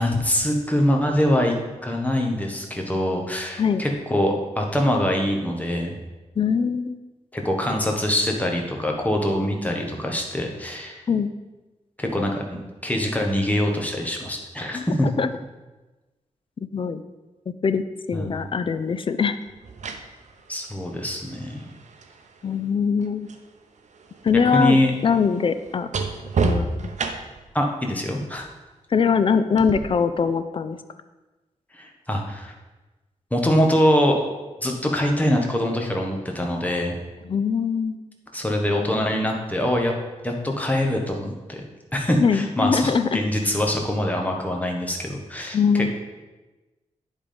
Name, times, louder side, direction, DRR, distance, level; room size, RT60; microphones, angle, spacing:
voice 1, 0.0-1.5 1.8-5.9 7.3-11.0 12.0-15.1 18.1-18.5 20.5-21.6 24.5-24.9 27.5-28.5 31.7-32.5 33.3-34.2 34.6-37.0 38.3-39.9 40.2-41.6 41.9-45.9, left 1 dB, 10° left, 1 dB, 1.2 m, -24 dB
voice 2, 6.4-7.0 11.1-11.3 14.7-15.3 16.7-17.0 17.6-19.4 22.4-23.3 24.2-24.8 25.0-25.9 26.4-26.7 28.9-30.8 37.2-38.0 42.2-43.2 45.5-45.9, left 6 dB, 45° left, 11 dB, 0.4 m, -22 dB
sound 1, 18.2-18.4 19.5-23.5 23.8-27.5 29.6-29.8, right 4 dB, 70° right, 0.7 m, -31 dB
9.9 x 3.6 x 5.1 m, 1.2 s
wide cardioid pair, 110°, 13 cm